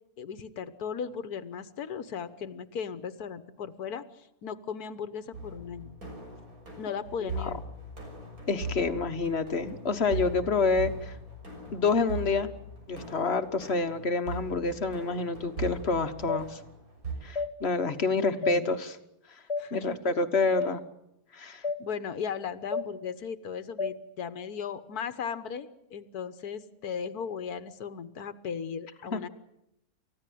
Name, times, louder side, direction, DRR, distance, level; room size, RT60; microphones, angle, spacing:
voice 1, 0.2-4.0 4.4-5.9 6.8-7.6 18.1-18.8 19.6-20.1 21.8-29.3, left 7 dB, 90° left, 12 dB, 1.7 m, -37 dB
sound 1, 5.3-17.1, right 2 dB, 70° right, 6.9 m, -40 dB
voice 2, 8.5-11.1 11.7-12.5 12.9-16.6 17.2-19.0 19.7-20.8 21.3-21.6 29.1-29.2, left 4 dB, 45° left, 10 dB, 1.5 m, -28 dB
sound 2, 16.3-16.4 17.3-17.5 18.4-18.6 19.5-19.6 20.6-20.7 21.6-21.8 22.7-22.9 23.8-23.9, left 4 dB, 20° left, 1.7 m, -30 dB
29.5 x 15.0 x 9.3 m, 0.85 s
omnidirectional pair, 1.6 m